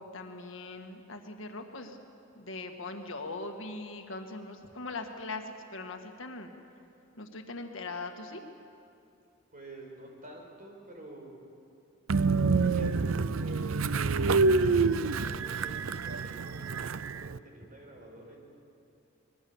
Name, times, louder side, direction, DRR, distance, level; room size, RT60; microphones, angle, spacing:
voice 1, 0.0-2.0 2.4-6.5 7.2-8.4, left 3 dB, 65° left, 4 dB, 1.9 m, -40 dB
voice 2, 9.5-11.4 12.4-13.8 14.3-18.4, right 1 dB, 40° right, 0 dB, 5.1 m, -49 dB
Train, 12.1-17.4, right 4 dB, 80° right, 0.6 m, -27 dB
25.0 x 21.5 x 7.2 m, 2.6 s
head